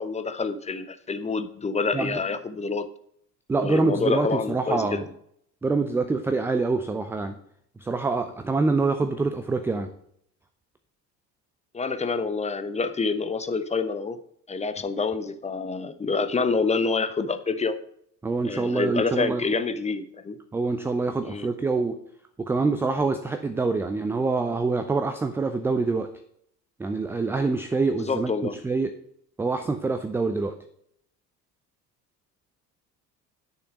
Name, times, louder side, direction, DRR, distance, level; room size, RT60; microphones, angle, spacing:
voice 1, 0.0-2.9 3.5-5.1 11.7-14.2 14.5-17.8 18.4-20.4 21.2-21.5 27.9-28.6, left 4 dB, 15° left, 11 dB, 0.7 m, -27 dB
voice 2, 3.5-5.1 5.6-7.4 7.8-9.9 18.2-19.4 20.5-21.9 22.4-26.1 26.8-28.3 28.6-28.9 29.4-30.5, right 3 dB, 5° right, 7 dB, 0.3 m, -25 dB
9.4 x 6.6 x 5.3 m, 0.69 s
figure-of-eight pair, 65°, 50 cm